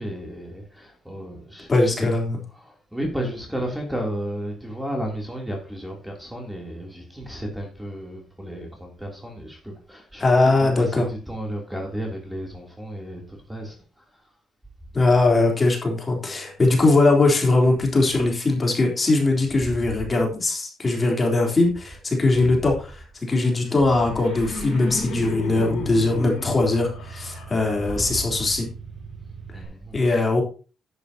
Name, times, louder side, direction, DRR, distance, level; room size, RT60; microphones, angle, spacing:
voice 1, 0.0-2.1 2.5-14.2 19.5-20.1 22.3-22.6 23.8-23.9 27.8-28.5 29.5-30.2, equal, 5° right, 3.2 m, -33 dB
voice 2, 1.7-2.4 10.2-11.0 14.9-28.7 29.9-30.4, left 2 dB, 30° left, 3.6 m, -20 dB
Laughter, 23.6-28.6, left 3 dB, 90° left, 2.9 m, -35 dB
Car / Engine starting, 24.2-29.7, right 4 dB, 75° right, 6.5 m, -40 dB
10.5 x 10.0 x 2.9 m
cardioid pair, 90°, 0 cm